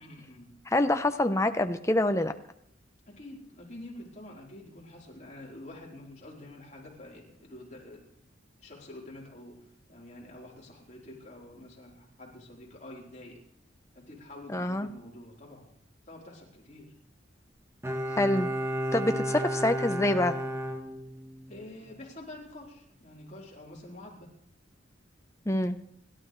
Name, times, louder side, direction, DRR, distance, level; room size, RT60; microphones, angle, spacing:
voice 1, 0.0-0.5 3.1-8.0 8.6-9.6 9.9-13.4 13.9-15.6 16.1-16.9 21.5-24.3, left 1 dB, 40° left, -3 dB, 4.0 m, -47 dB
voice 2, 0.7-2.3 14.5-14.9 18.2-18.5 18.9-20.3 25.5-25.8, left 1 dB, 15° left, 7 dB, 0.8 m, -26 dB
Bowed string instrument, 17.8-21.6 21.9-22.0, equal, 15° right, 1.2 m, -32 dB
29.0 x 12.0 x 3.3 m, 0.70 s
head